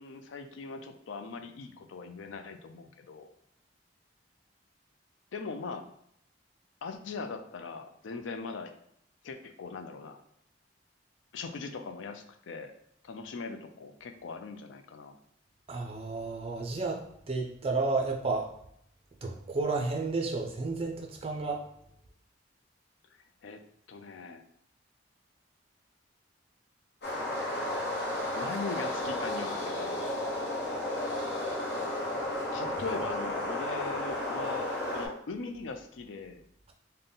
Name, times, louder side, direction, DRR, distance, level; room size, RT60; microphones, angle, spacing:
voice 1, 0.0-3.3 5.3-5.9 6.8-8.7 9.2-10.2 11.3-12.7 13.0-15.1 23.4-23.6 23.9-24.4 28.3-30.1 32.5-36.4, left 4 dB, 85° left, 7 dB, 0.4 m, -40 dB
voice 2, 15.7-18.5 19.2-21.6, right 3 dB, 30° right, 2 dB, 0.4 m, -32 dB
sound 1, 27.0-35.1, left 1 dB, 60° left, 0.9 m, -33 dB
3.7 x 2.2 x 3.8 m, 0.72 s
head